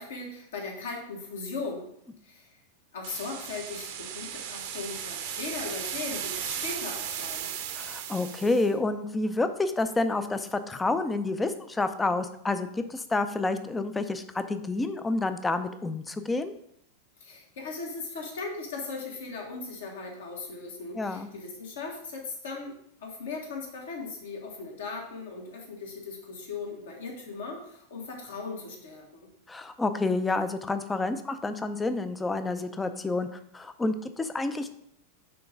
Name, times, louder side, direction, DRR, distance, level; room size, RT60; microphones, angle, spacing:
voice 1, 0.0-1.8 2.2-2.6 2.9-7.5 17.2-29.3, left 4 dB, 60° left, 0 dB, 1.7 m, -38 dB
sound 1, 3.0-8.7, right 9 dB, 50° right, 0.7 m, -36 dB
voice 2, 7.8-16.5 21.0-21.3 29.5-33.3 33.5-34.7, left 2 dB, 10° left, 10 dB, 0.5 m, -29 dB
5.7 x 3.8 x 5.1 m, 0.73 s
figure-of-eight pair, 90°, 0 cm